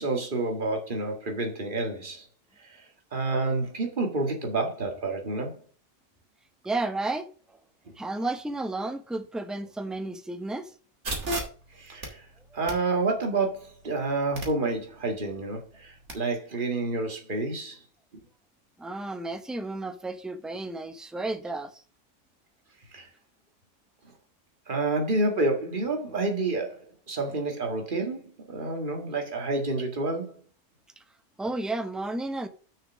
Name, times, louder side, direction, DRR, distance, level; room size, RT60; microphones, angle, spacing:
voice 1, 0.0-2.3 3.1-5.6 11.8-12.2 12.5-17.8 22.9-23.1 24.7-30.4, right 2 dB, 40° right, 2.0 m, -29 dB
voice 2, 6.6-7.6 8.0-10.7 18.8-21.8 31.0-31.1 31.4-32.5, right 2 dB, ahead, 0.6 m, -32 dB
sound 1, 11.0-16.1, right 1 dB, 65° right, 2.8 m, -38 dB
6.6 x 5.7 x 6.2 m
omnidirectional pair, 1.3 m